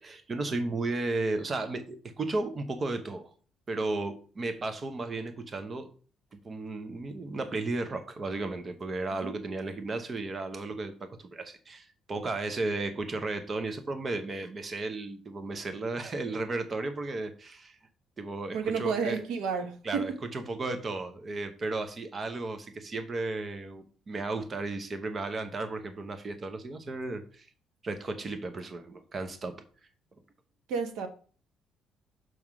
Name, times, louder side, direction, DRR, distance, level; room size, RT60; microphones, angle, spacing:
voice 1, 0.0-3.3 3.7-5.9 6.3-17.8 18.2-19.2 19.8-27.5 27.8-29.6, right 2 dB, 35° right, 1.0 m, -34 dB
voice 2, 18.5-20.1 30.7-31.1, right 5 dB, 85° right, 1.2 m, -31 dB
6.2 x 3.6 x 6.1 m
cardioid pair, 110°, 0 cm